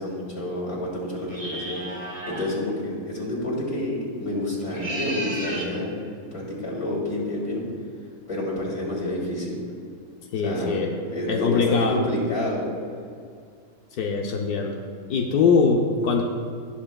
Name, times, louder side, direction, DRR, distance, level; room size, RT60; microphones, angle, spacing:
voice 1, 0.0-5.9 6.3-7.6 8.3-9.6 10.4-10.8 11.1-12.7, left 1 dB, 45° left, -6 dB, 3.2 m, -29 dB
sound 1, 1.3-2.5 4.6-5.7, right 1 dB, 20° right, 1.4 m, -33 dB
voice 2, 10.3-10.9 11.3-12.0 14.0-14.8 15.1-16.2, left 5 dB, 85° left, 1 dB, 1.3 m, -22 dB
19.0 x 7.5 x 2.3 m, 2.2 s
omnidirectional pair, 1.6 m